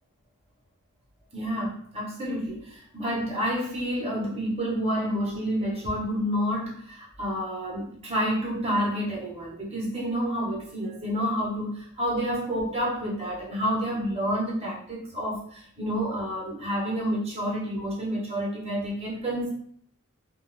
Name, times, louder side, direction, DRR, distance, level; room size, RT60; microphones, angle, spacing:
voice 1, 1.3-19.5, equal, 30° right, -3 dB, 0.7 m, -29 dB
2.2 x 2.0 x 3.0 m, 0.63 s
head